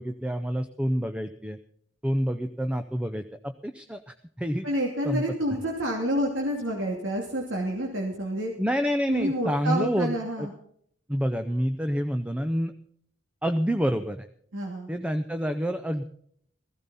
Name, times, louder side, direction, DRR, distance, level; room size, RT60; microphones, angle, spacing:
voice 1, 0.0-1.6 2.0-4.7 5.0-5.2 8.6-10.5 11.1-12.7 13.4-14.3 14.9-16.0, equal, 5° right, 9 dB, 0.6 m, -28 dB
voice 2, 4.6-8.5 9.1-10.5 14.5-14.9, equal, 80° right, 0 dB, 2.6 m, -28 dB
16.0 x 15.0 x 4.1 m, 0.64 s
head